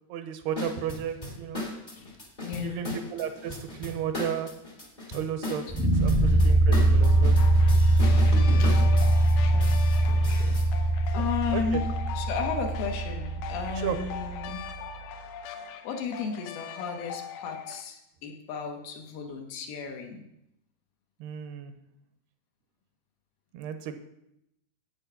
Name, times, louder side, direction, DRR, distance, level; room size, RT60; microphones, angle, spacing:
voice 1, 0.1-1.6 2.5-4.5 5.1-7.4 11.5-11.8 13.8-14.0 21.2-21.7 23.5-24.0, right 9 dB, 80° right, 8 dB, 2.7 m, -34 dB
sound 1, 0.5-10.7, left 1 dB, 30° left, 0.8 m, -37 dB
voice 2, 1.9-3.0 5.8-6.4 8.6-9.1 9.4-10.9 11.1-11.8 12.2-14.6 15.8-20.2, left 6 dB, 70° left, 3 dB, 2.8 m, -35 dB
sound 2, 5.7-14.7, right 1 dB, 20° right, 0.4 m, -22 dB
sound 3, 7.0-17.8, left 8 dB, 90° left, 3.0 m, -41 dB
9.1 x 8.5 x 5.6 m, 0.84 s
omnidirectional pair, 4.7 m